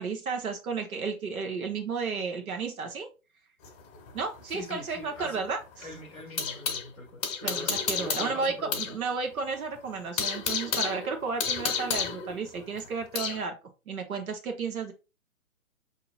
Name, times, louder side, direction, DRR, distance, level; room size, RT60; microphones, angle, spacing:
voice 1, 0.0-3.1 4.1-5.9 7.4-13.6 13.9-14.9, right 5 dB, 80° right, 1.0 m, -33 dB
sound 1, 3.6-6.9 7.2-9.0 9.3-9.4 9.8-13.4, left 6 dB, 25° left, 0.9 m, -32 dB
voice 2, 4.5-5.4 5.8-9.0, left 2 dB, 5° left, 0.4 m, -43 dB
6.0 x 2.8 x 2.4 m
hypercardioid pair, 145°, 42 cm